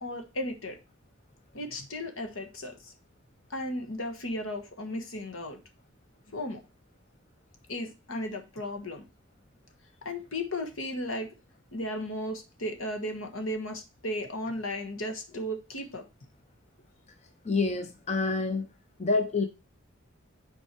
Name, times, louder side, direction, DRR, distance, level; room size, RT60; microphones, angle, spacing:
voice 1, 0.0-0.8 1.5-2.9 3.5-5.6 6.3-6.6 7.7-9.0 10.0-11.3 11.7-16.0, left 1 dB, 70° left, 6 dB, 1.4 m, -35 dB
voice 2, 17.4-18.7 19.0-19.5, left 3 dB, 30° left, 6 dB, 0.6 m, -27 dB
7.2 x 4.5 x 4.5 m, 0.29 s
head